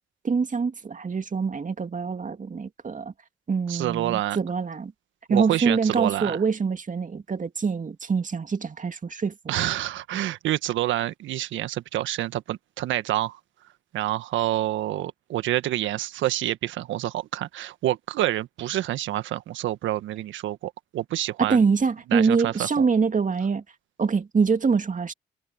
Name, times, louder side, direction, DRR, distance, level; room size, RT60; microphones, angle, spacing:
voice 1, 0.2-3.1 3.5-4.9 5.3-9.5 21.4-23.6 24.0-25.1, right 5 dB, 40° right, 2.3 m, -25 dB
voice 2, 3.7-4.4 5.3-6.4 9.5-13.4 13.9-21.6 22.1-22.9, right 14 dB, 75° right, 1.6 m, -27 dB
hypercardioid pair, 45°, 20 cm